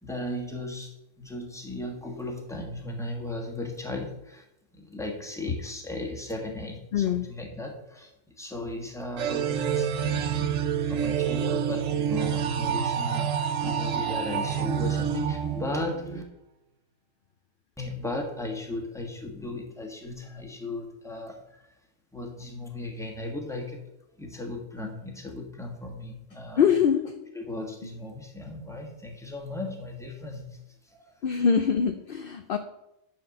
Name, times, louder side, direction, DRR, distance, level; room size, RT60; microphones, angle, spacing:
voice 1, 0.0-4.5 4.7-10.5 10.9-16.2 17.8-21.7 22.1-23.8 24.2-26.7 27.3-30.6 30.8-31.2, left 2 dB, ahead, 1 dB, 1.4 m, -36 dB
voice 2, 6.9-7.3 26.6-27.1 31.2-32.6, left 7 dB, 55° left, 8 dB, 0.6 m, -23 dB
sound 1, 9.2-16.2, right 8 dB, 75° right, 1.1 m, -28 dB
10.0 x 4.5 x 6.6 m, 0.86 s
omnidirectional pair, 1.4 m